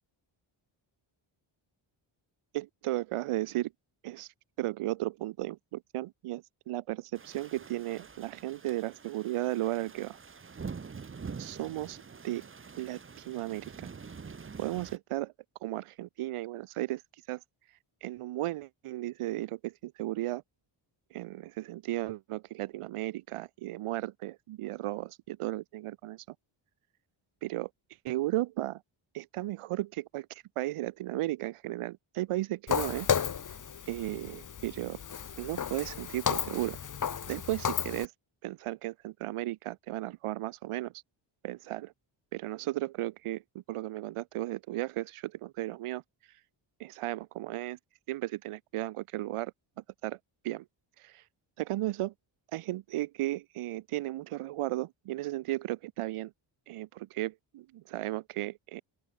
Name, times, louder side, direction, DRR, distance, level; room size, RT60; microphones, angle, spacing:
voice 1, 2.5-3.7 4.0-4.3 4.6-10.2 11.4-12.0 12.2-12.5 12.8-13.0 13.3-13.9 14.6-15.3 15.6-17.0 17.3-17.4 18.0-20.4 21.1-26.3 27.4-27.7 28.0-28.8 29.1-33.1 33.9-35.0 35.4-36.8 37.3-38.1 38.4-40.9 41.4-41.9 42.3-46.0 46.8-47.8 48.1-49.5 50.0-50.2 50.4-50.6 51.0-51.2 51.6-52.1 52.5-56.3 56.7-58.8, right 16 dB, 85° right, 0.7 m, -35 dB
sound 1, 7.1-15.0, right 5 dB, 25° right, 0.9 m, -46 dB
Walk footsteps, 32.7-38.1, left 7 dB, 40° left, 1.0 m, -33 dB
open air
wide cardioid pair, 115°, 50 cm